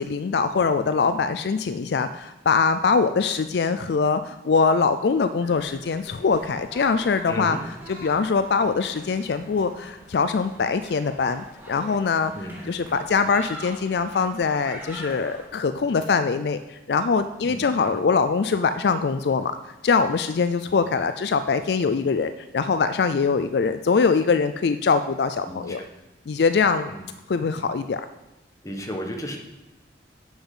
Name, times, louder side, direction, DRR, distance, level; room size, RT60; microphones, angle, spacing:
voice 1, 0.0-7.6 7.9-12.3 12.7-19.5 19.8-25.8 26.3-26.9 27.3-28.0, left 5 dB, 65° left, 10 dB, 0.4 m, -23 dB
sound 1, 5.4-15.5, equal, 10° right, 1.8 m, -44 dB
voice 2, 7.3-7.6 12.3-12.7 17.4-18.0 20.6-20.8 25.4-25.8 26.9-27.0 28.6-29.4, equal, 20° left, 2 dB, 1.3 m, -34 dB
7.9 x 7.0 x 5.6 m, 1.0 s
head